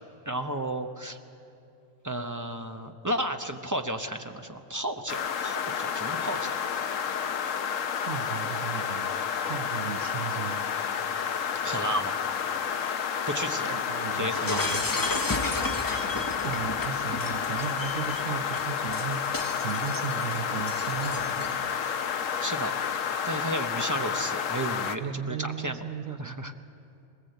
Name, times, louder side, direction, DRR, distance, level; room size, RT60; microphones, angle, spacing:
voice 1, 0.3-1.2 2.0-6.5 11.6-12.1 13.3-13.7 14.2-14.6 22.4-22.7 23.2-25.8 26.2-26.5, right 1 dB, 15° right, 5 dB, 0.8 m, -33 dB
sound 1, 5.1-25.0, left 7 dB, 75° left, 1.2 m, -30 dB
voice 2, 8.0-9.1 9.4-10.9 11.7-11.8 13.7-14.9 16.4-21.7 25.0-26.5, right 7 dB, 85° right, 7 dB, 1.3 m, -36 dB
Shatter, 14.3-21.7, left 2 dB, 20° left, 0.8 m, -34 dB
20.5 x 19.5 x 8.0 m, 2.7 s
omnidirectional pair, 1.3 m